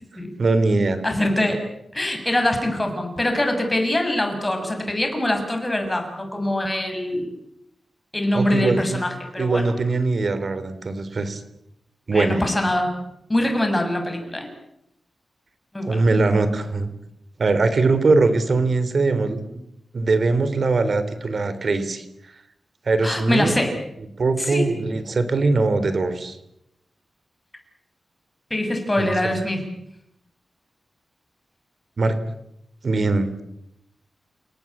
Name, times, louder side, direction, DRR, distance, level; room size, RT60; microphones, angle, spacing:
voice 1, 0.4-1.0 8.3-9.0 9.4-11.4 12.1-12.4 15.9-16.9 17.4-19.6 19.9-22.1 22.9-23.5 24.2-26.4 29.0-29.3 32.0-32.2 32.8-33.4, right 3 dB, 60° right, 12 dB, 3.5 m, -21 dB
voice 2, 1.0-1.6 1.9-7.3 8.1-9.7 12.1-12.9 13.3-14.5 15.7-16.1 23.0-23.7 24.4-24.7 28.5-29.7, left 1 dB, 20° left, 5 dB, 7.0 m, -23 dB
29.0 x 18.5 x 8.6 m, 0.81 s
cardioid pair, 70°, 0 cm